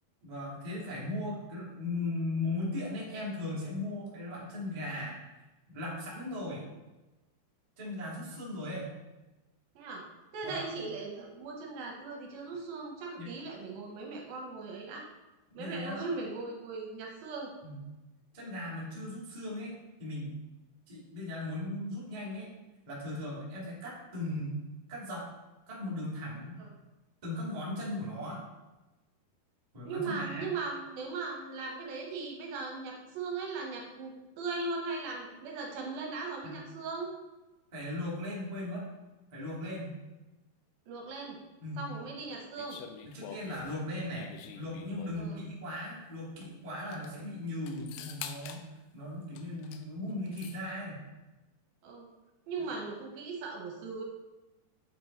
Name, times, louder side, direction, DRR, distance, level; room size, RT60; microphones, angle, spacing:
voice 1, 0.2-5.1 5.7-6.7 7.8-8.9 10.4-10.8 13.2-13.3 15.5-16.0 17.6-17.8 18.3-19.7 20.0-20.4 20.9-22.5 22.9-24.6 24.9-25.3 25.7-26.6 27.2-28.4 29.7-30.5 36.4-36.6 37.7-38.8 39.3-39.9 41.6-41.8 43.0-44.3 44.5-48.6 48.9-51.0, left 1 dB, 20° right, -6 dB, 1.2 m, -37 dB
voice 2, 10.3-15.0 15.6-17.5 26.6-26.7 29.8-37.1 40.9-41.4 41.8-42.8 45.2-45.4 51.8-52.1 52.5-54.0, right 4 dB, 75° right, 0 dB, 2.6 m, -38 dB
sound 1, 42.6-45.4 46.4-46.5 46.8-47.1 47.7-48.7 49.4-49.9 50.1-50.6, left 8 dB, 85° left, 2.0 m, -46 dB
7.6 x 5.2 x 4.5 m, 1.1 s
omnidirectional pair, 4.5 m